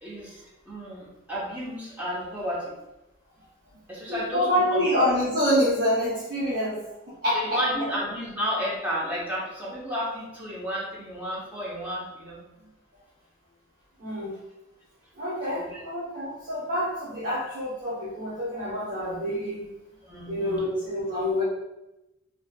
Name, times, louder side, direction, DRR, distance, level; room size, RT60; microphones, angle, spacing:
voice 1, 0.0-2.7 3.9-4.8 7.3-12.4 15.5-15.8 20.0-20.7, equal, 10° right, -7 dB, 0.6 m, -32 dB
voice 2, 4.1-7.6 12.6-12.7 14.0-14.3 15.1-19.7 20.3-21.4, equal, 45° right, -10 dB, 0.7 m, -27 dB
2.6 x 2.3 x 2.2 m, 0.95 s
head